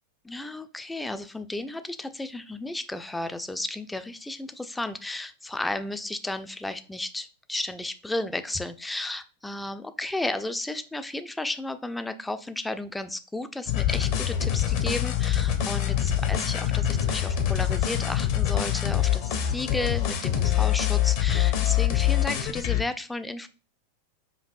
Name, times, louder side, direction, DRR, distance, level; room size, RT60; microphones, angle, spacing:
voice 1, 0.2-23.5, left 2 dB, 5° left, 10 dB, 0.3 m, -33 dB
sound 1, 13.7-22.8, left 11 dB, 45° left, 0.6 m, -25 dB
5.3 x 2.5 x 2.4 m, 0.36 s
figure-of-eight pair, 90°, 0 cm